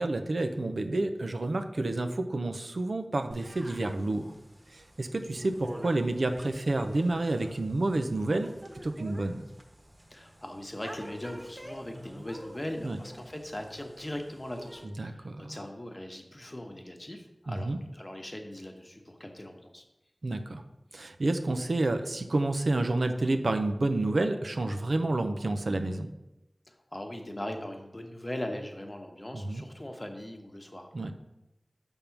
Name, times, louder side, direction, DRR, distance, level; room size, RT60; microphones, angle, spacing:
voice 1, 0.0-4.3 4.7-8.5 8.8-9.4 12.8-13.0 15.0-15.5 17.5-17.8 20.2-20.6 20.9-26.1 29.3-29.6 30.9-31.1, right 2 dB, 85° right, 7 dB, 0.6 m, -29 dB
sound 1, 3.3-14.8, equal, 30° right, 1.2 m, -48 dB
voice 2, 10.1-19.8 26.7-31.1, left 1 dB, 30° left, 3 dB, 1.0 m, -40 dB
6.9 x 3.6 x 5.9 m, 0.95 s
wide cardioid pair, 60°, 0 cm